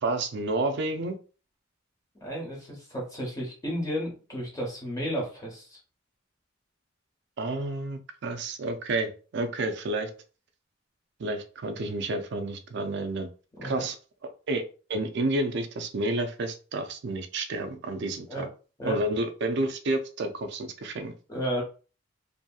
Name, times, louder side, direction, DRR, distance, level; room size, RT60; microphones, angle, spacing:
voice 1, 0.0-1.2 7.4-10.1 11.2-13.3 13.6-14.0 14.5-14.6 14.9-18.5 18.8-21.1, right 2 dB, 60° right, 8 dB, 0.4 m, -30 dB
voice 2, 2.2-5.8 13.5-13.9 18.3-18.5 18.8-19.0 21.3-21.6, equal, 20° left, -2 dB, 0.9 m, -33 dB
2.8 x 2.7 x 2.2 m, 0.36 s
head